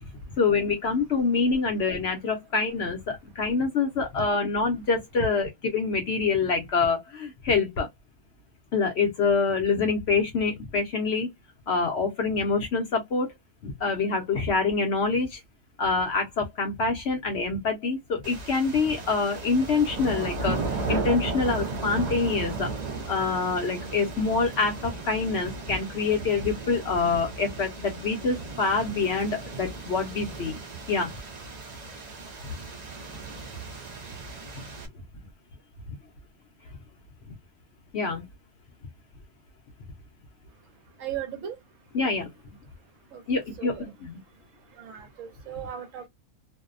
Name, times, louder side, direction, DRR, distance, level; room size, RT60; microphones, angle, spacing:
voice 1, 0.4-7.9 8.7-11.3 11.7-13.3 13.6-15.4 15.8-22.7 23.1-30.6 30.9-31.1 37.9-38.2 41.9-42.3 43.3-44.2, left 4 dB, 60° left, 0.7 m, -26 dB
sound 1, 18.2-34.9, right 3 dB, 55° right, 0.5 m, -35 dB
voice 2, 41.0-41.6 43.1-43.2 43.6-43.9 44.8-46.1, right 10 dB, 70° right, 0.9 m, -37 dB
2.6 x 2.0 x 2.4 m
omnidirectional pair, 1.5 m